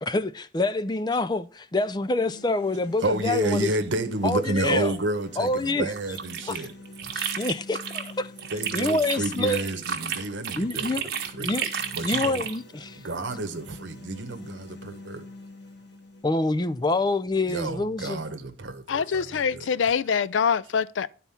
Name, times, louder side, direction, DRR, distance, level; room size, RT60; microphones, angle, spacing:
voice 1, 0.0-3.7 4.2-4.9 5.4-5.9 6.4-6.7 7.1-8.3 8.7-9.6 10.6-11.1 11.4-11.7 12.0-13.0 16.2-18.2, left 2 dB, 20° left, 0.4 m, -26 dB
sound 1, 1.8-17.8, left 2 dB, 60° left, 1.6 m, -47 dB
voice 2, 3.0-6.7 7.0-7.1 8.5-10.9 11.2-11.6 11.9-12.5 13.0-15.2 17.5-19.6, right 2 dB, 85° right, 1.1 m, -30 dB
sound 2, 5.9-8.1 8.4-12.6, right 7 dB, 55° right, 1.5 m, -32 dB
voice 3, 18.9-21.1, left 6 dB, 90° left, 0.4 m, -24 dB
11.0 x 4.2 x 5.6 m
head